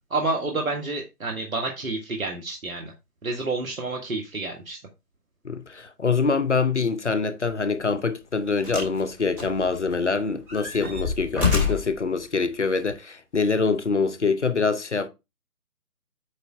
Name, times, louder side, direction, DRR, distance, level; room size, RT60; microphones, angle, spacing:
voice 1, 0.1-2.9 3.2-4.8, right 3 dB, 60° right, 1.6 m, -29 dB
voice 2, 5.4-15.1, left 4 dB, 50° left, 0.8 m, -25 dB
sound 1, 7.4-7.6 8.6-9.0 9.4-10.1 10.5-12.0 12.8-12.9, left 5 dB, 5° right, 2.1 m, -27 dB
8.3 x 3.5 x 4.3 m
figure-of-eight pair, 160°, 46 cm